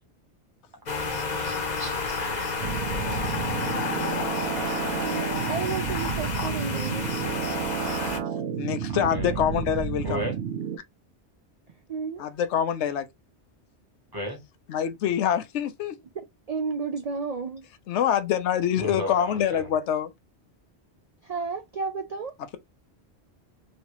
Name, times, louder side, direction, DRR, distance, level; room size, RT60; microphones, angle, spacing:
sound 1, 0.9-8.2, left 4 dB, 45° left, 0.8 m, -30 dB
voice 1, 1.0-3.4 9.1-9.4 10.0-10.4 14.1-14.4 18.8-19.7, equal, 20° right, 1.0 m, -36 dB
sound 2, 2.6-10.8, right 7 dB, 80° right, 0.9 m, -31 dB
voice 2, 5.0-7.1 11.9-12.3 16.2-17.6 21.2-22.3, right 5 dB, 55° right, 0.4 m, -32 dB
voice 3, 8.6-10.2 12.2-13.1 14.7-15.9 17.9-20.1, left 9 dB, 85° left, 0.9 m, -25 dB
3.1 x 2.8 x 2.9 m
omnidirectional pair, 1.1 m